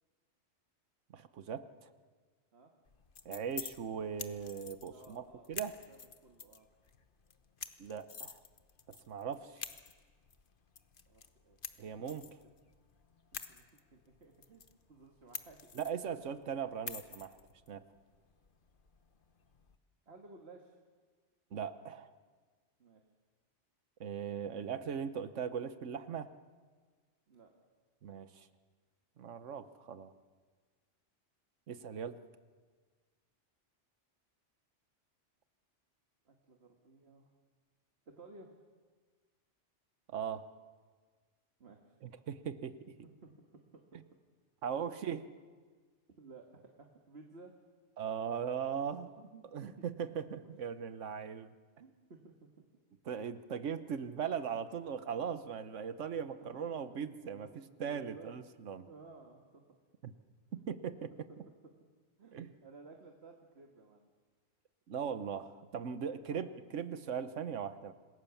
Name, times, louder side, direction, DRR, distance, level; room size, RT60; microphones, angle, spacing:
voice 1, 1.1-1.9 3.2-5.8 7.8-8.4 8.9-9.7 11.8-12.4 15.7-17.4 17.7-17.8 21.5-22.1 24.0-26.3 28.0-28.5 29.2-30.1 31.7-32.2 40.1-40.5 42.0-42.9 44.6-45.3 48.0-49.1 49.5-51.5 53.1-58.9 60.0-60.1 60.5-61.1 62.3-62.5 64.9-67.9, right 7 dB, 90° right, 12 dB, 1.3 m, -39 dB
sound 1, 2.9-19.8, left 5 dB, 50° left, 1.2 m, -50 dB
voice 2, 4.9-6.7 9.3-9.5 11.1-11.6 12.4-12.8 13.3-14.6 14.9-15.6 16.2-16.3 20.1-20.8 22.8-23.0 27.3-27.5 36.3-37.3 38.1-38.5 41.6-42.0 43.0-43.3 43.7-43.9 46.2-47.5 49.0-49.9 50.4-50.5 51.8-52.6 56.4-58.3 58.9-59.8 60.5-60.6 61.1-61.4 61.6-61.7 62.2-64.1 66.1-66.4, right 3 dB, 60° right, 2 dB, 2.0 m, -56 dB
27.0 x 20.5 x 7.1 m, 1.5 s
omnidirectional pair, 1.2 m